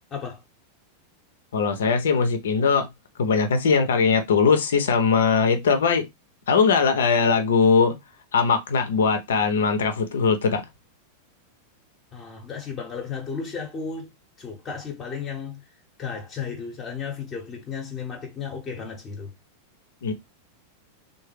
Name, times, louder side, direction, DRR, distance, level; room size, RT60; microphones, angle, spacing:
voice 1, 1.5-2.9 3.2-6.1 6.5-7.9 8.3-10.6 20.0-20.1, left 5 dB, 65° left, 0.7 m, -20 dB
voice 2, 12.1-14.1 14.4-15.6 16.0-19.3, left 6 dB, 25° left, 0.9 m, -34 dB
3.6 x 2.1 x 3.3 m
figure-of-eight pair, 90°, 0 cm